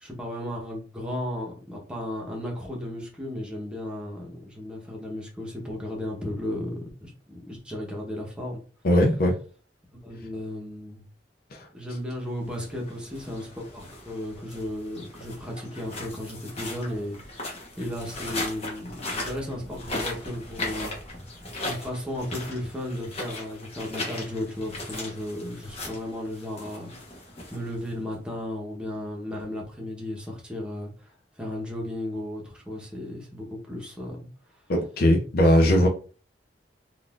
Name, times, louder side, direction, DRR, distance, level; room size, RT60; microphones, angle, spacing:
voice 1, 0.0-8.6 10.0-11.0 11.7-20.9 21.3-26.9 27.5-31.1 31.4-34.2 35.6-35.9, left 1 dB, 5° right, -2 dB, 0.9 m, -35 dB
voice 2, 8.8-9.4 11.5-11.7 34.7-35.9, left 1 dB, 60° left, 1 dB, 0.6 m, -20 dB
sound 1, 12.4-28.1, left 2 dB, 35° left, 1.1 m, -38 dB
3.8 x 2.5 x 2.4 m, 0.38 s
head